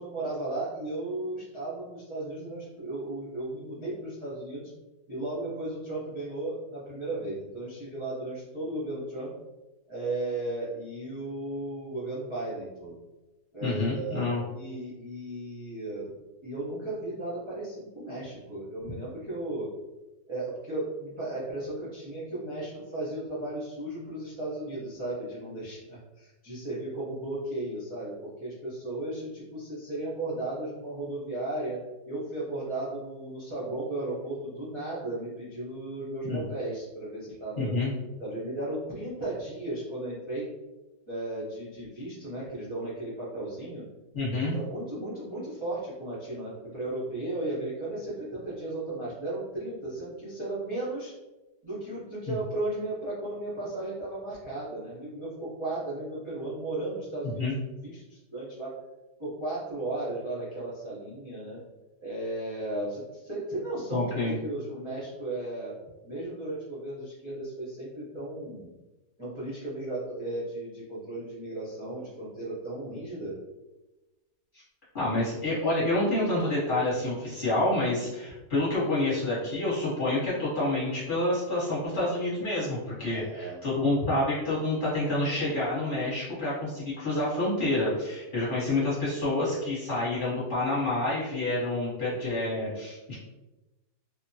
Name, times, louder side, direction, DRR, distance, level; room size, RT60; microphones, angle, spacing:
voice 1, 0.0-4.7 5.1-9.3 9.9-13.0 13.5-14.2 14.5-16.1 16.4-19.7 20.3-31.8 32.1-37.7 38.2-40.5 41.1-43.8 44.3-51.1 51.6-57.4 57.8-58.7 59.2-61.6 62.0-65.7 66.0-68.7 69.2-73.3 83.0-83.6, right 2 dB, 35° right, -10 dB, 0.4 m, -35 dB
voice 2, 13.6-14.4 36.2-36.4 37.6-37.9 44.1-44.5 52.3-52.4 57.4-57.6 63.9-64.3 74.9-93.2, left 2 dB, 35° left, -10 dB, 1.0 m, -28 dB
2.7 x 2.2 x 2.6 m, 1.1 s
omnidirectional pair, 1.7 m